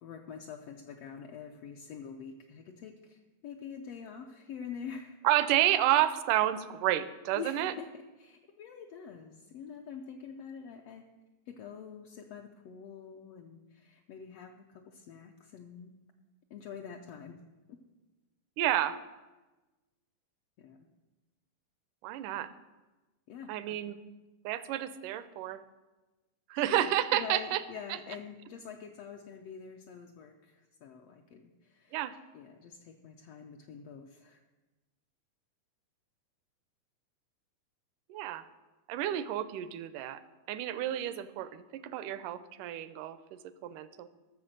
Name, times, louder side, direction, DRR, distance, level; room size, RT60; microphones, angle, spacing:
voice 1, 0.0-5.2 7.3-11.1 11.5-16.0 16.5-17.4 17.7-17.8 20.6-20.9 23.3-23.8 26.5-26.9 27.1-32.0 32.3-34.4, left 7 dB, 80° left, 2 dB, 1.4 m, -46 dB
voice 2, 5.2-7.7 18.6-19.0 22.0-22.5 23.5-24.0 24.4-25.6 26.5-27.6 27.9-28.0 31.9-32.1 38.1-38.5 38.9-40.2 40.5-44.1, right 13 dB, 85° right, 13 dB, 2.2 m, -30 dB
13.5 x 6.8 x 6.5 m, 1.2 s
omnidirectional pair, 3.6 m